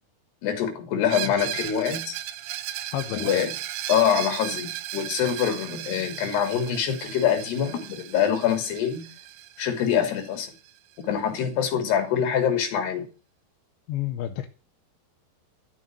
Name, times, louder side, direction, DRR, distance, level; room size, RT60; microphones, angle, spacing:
voice 1, 0.4-2.2 3.1-3.5 3.9-9.1 9.6-10.5 11.1-13.1, left 8 dB, 70° left, 5.0 m, -25 dB
Screech, 1.1-10.7, right 13 dB, 85° right, 3.3 m, -36 dB
voice 2, 2.9-3.3 13.9-14.5, left 13 dB, 85° left, 3.3 m, -30 dB
13.5 x 7.7 x 7.6 m
omnidirectional pair, 5.0 m